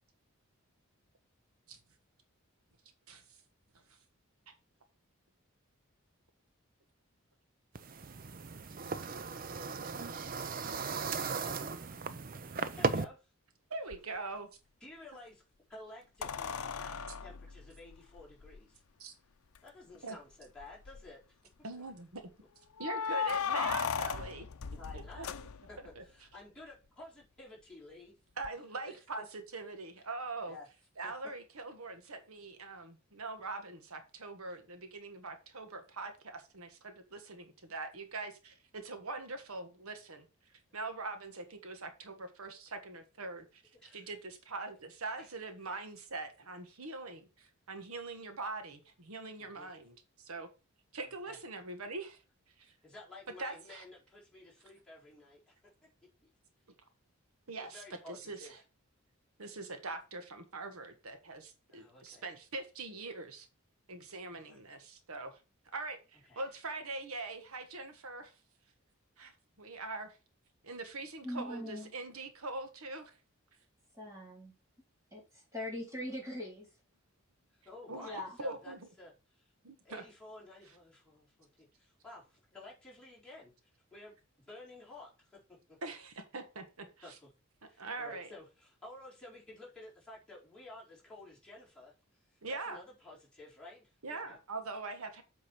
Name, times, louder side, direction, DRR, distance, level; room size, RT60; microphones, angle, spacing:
sound 1, 7.8-13.0, right 4 dB, 40° right, 0.5 m, -36 dB
voice 1, 12.5-13.3 14.8-15.4 15.7-18.8 19.6-21.4 24.8-28.1 28.8-29.0 30.4-30.7 31.0-31.3 43.7-44.1 45.1-45.5 49.4-49.7 51.3-51.4 52.8-55.4 56.2-56.3 57.6-58.6 61.7-62.2 64.3-64.6 66.3-66.4 77.6-79.5 79.8-83.5 83.9-84.2 84.4-85.4 85.7-85.8 86.8-87.3 87.6-94.4, left 2 dB, 5° left, 4.5 m, -53 dB
voice 2, 13.7-14.5 19.0-19.1 20.0-20.2 21.6-22.2 22.8-24.5 24.9-25.3 26.0-26.1 28.4-30.6 31.0-40.2 40.7-43.6 43.9-50.5 50.9-52.2 52.6-52.7 53.4-53.8 57.5-58.6 59.4-63.5 63.9-65.4 65.7-68.3 69.2-70.2 70.6-73.2 77.9-78.1 78.4-78.8 79.6-80.0 85.8-87.1 87.8-88.3 92.4-92.8 94.0-95.2, right 3 dB, 80° right, 1.4 m, -43 dB
sound 2, 13.9-14.0 16.2-18.6 19.6-19.7 19.9-20.0 20.6-21.1 22.8-25.9 28.4-28.5, left 6 dB, 85° left, 0.6 m, -37 dB
voice 3, 71.2-71.9 74.0-74.5 75.1-75.2 75.5-76.7 78.0-78.3, left 1 dB, 15° right, 4.1 m, -41 dB
8.1 x 5.4 x 4.6 m
head